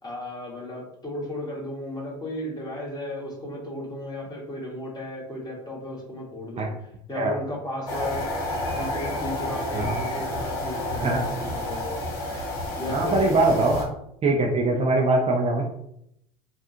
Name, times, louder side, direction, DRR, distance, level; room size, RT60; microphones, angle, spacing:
voice 1, 0.0-8.3 8.7-12.0 12.7-13.2 13.5-13.6 14.7-14.9, left 1 dB, 20° left, -3 dB, 1.5 m, -35 dB
sound 1, 7.9-13.8, left 1 dB, 85° left, 0.8 m, -30 dB
voice 2, 9.7-10.1 10.9-11.2 12.9-13.9 14.2-15.6, right 2 dB, 30° right, 0 dB, 0.5 m, -22 dB
3.5 x 2.3 x 2.8 m, 0.76 s
hypercardioid pair, 75°, 19 cm